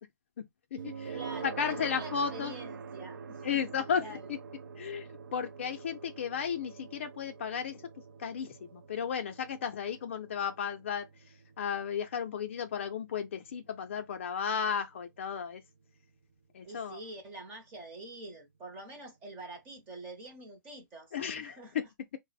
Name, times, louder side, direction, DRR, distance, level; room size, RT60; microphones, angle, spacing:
voice 1, 0.4-2.5 3.4-4.4 4.8-7.8 8.2-15.6 16.5-17.0 21.1-21.9, left 7 dB, 40° left, 0.4 m, -34 dB
sound 1, 0.8-15.7, right 5 dB, 80° right, 0.5 m, -46 dB
voice 2, 1.1-3.6 4.0-4.2 16.6-21.7, right 2 dB, 15° right, 0.7 m, -46 dB
3.5 x 2.0 x 4.0 m
hypercardioid pair, 175°, 10 cm